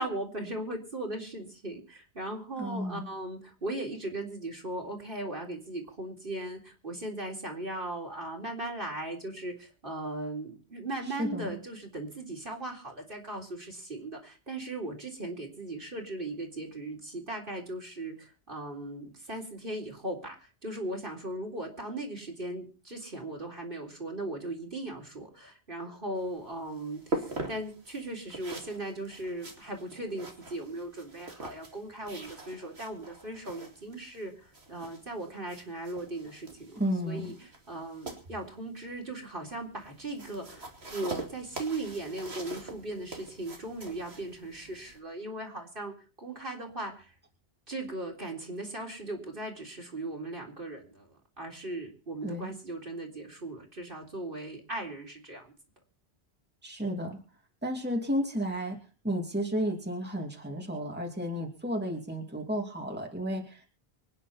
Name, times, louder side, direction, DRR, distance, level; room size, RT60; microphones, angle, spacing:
voice 1, 0.0-47.1 47.7-55.5, right 2 dB, 60° right, 0 dB, 3.9 m, -38 dB
voice 2, 2.6-3.1 11.2-11.6 36.8-37.3 52.2-52.5 56.6-57.2 57.6-58.8 59.0-63.7, equal, 10° right, 0 dB, 2.6 m, -32 dB
sound 1, 26.1-45.0, right 2 dB, 85° right, 3.0 m, -43 dB
25.0 x 9.8 x 4.3 m, 0.36 s
omnidirectional pair, 1.0 m